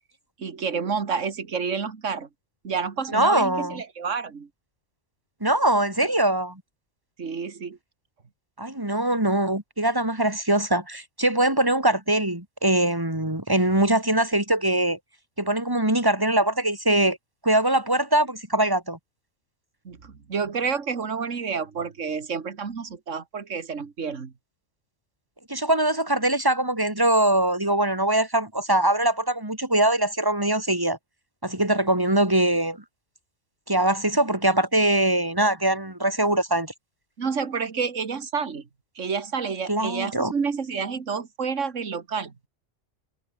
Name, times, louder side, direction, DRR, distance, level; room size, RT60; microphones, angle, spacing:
voice 1, 0.4-2.3 2.6-4.5 7.2-7.8 19.9-24.3 37.2-38.7 39.0-42.3, right 5 dB, 75° right, 2.2 m, -29 dB
voice 2, 3.1-3.8 5.4-6.6 8.6-15.0 15.4-17.2 17.4-19.0 25.5-31.0 31.4-32.8 33.7-36.7 39.7-40.3, right 1 dB, 15° right, 3.9 m, -22 dB
omnidirectional pair, 1.3 m